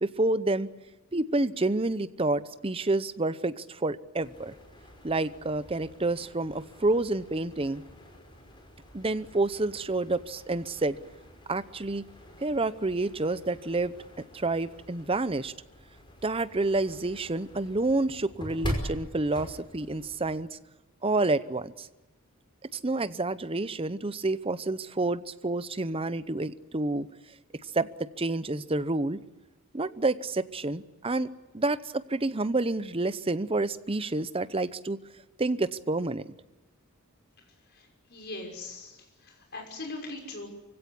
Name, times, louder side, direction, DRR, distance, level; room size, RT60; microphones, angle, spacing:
voice 1, 0.0-0.7 1.1-4.5 5.0-7.8 8.9-11.0 11.5-12.0 12.4-13.9 14.3-15.5 16.2-20.6 21.0-21.9 22.7-27.1 27.7-29.2 29.7-35.0 35.4-36.2, right 2 dB, 25° right, 14 dB, 0.7 m, -29 dB
sound 1, 4.2-20.4, equal, 20° left, 5.3 m, -43 dB
voice 2, 37.7-39.0 39.2-40.5, left 2 dB, 50° left, 3 dB, 6.0 m, -40 dB
24.5 x 16.5 x 10.0 m, 1.1 s
head